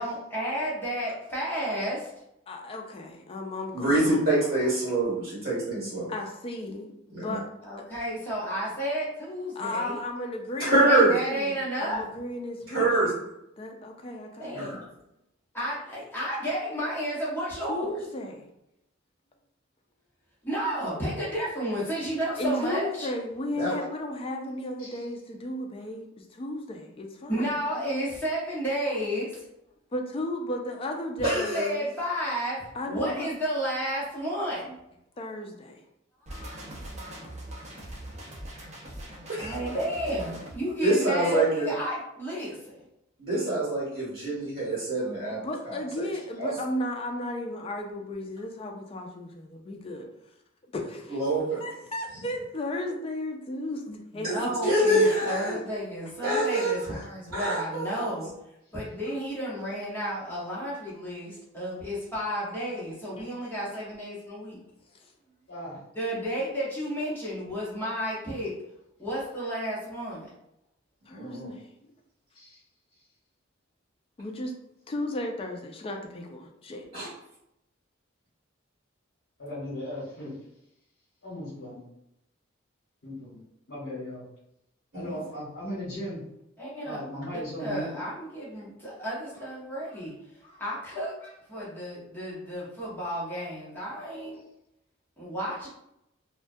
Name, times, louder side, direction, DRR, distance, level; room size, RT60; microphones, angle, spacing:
voice 1, 0.0-2.1 7.6-10.0 10.9-12.0 14.4-14.9 15.5-17.9 20.4-23.1 27.3-29.4 31.2-34.7 36.2-36.6 39.1-42.8 54.1-58.3 58.7-64.6 65.9-68.5 69.0-70.3 86.6-87.0 87.3-90.1 90.4-94.4 95.2-95.7, equal, 10° left, -7 dB, 0.8 m, -32 dB
voice 2, 2.5-4.4 6.1-7.5 7.8-7.9 9.6-13.2 13.6-14.8 17.7-18.5 22.4-27.5 27.8-28.0 29.9-31.9 32.7-33.3 35.2-35.8 45.3-50.1 50.7-54.7 63.1-63.2 71.1-71.9 74.2-74.5 74.9-76.8, left 1 dB, 30° left, 3 dB, 0.3 m, -35 dB
voice 3, 3.7-6.1 7.1-7.4 10.6-11.1 12.7-13.1 14.5-14.8 23.6-23.7 31.2-31.6 39.4-39.5 40.8-41.7 43.2-45.4 45.7-45.8 46.4-46.5 51.1-51.6 54.2-55.5 56.2-56.7 57.3-58.1 71.1-71.5 76.9-77.1 84.9-85.1, right 1 dB, 50° right, -10 dB, 1.1 m, -25 dB
sound 1, 36.3-40.6, right 1 dB, 35° right, 0.5 m, -41 dB
voice 4, 65.5-65.8 72.3-72.6 79.4-80.3 81.2-81.8 83.0-83.4 83.7-84.2 84.9-86.2 86.8-87.9, equal, 60° left, -8 dB, 1.0 m, -37 dB
2.2 x 2.1 x 2.5 m, 0.82 s
head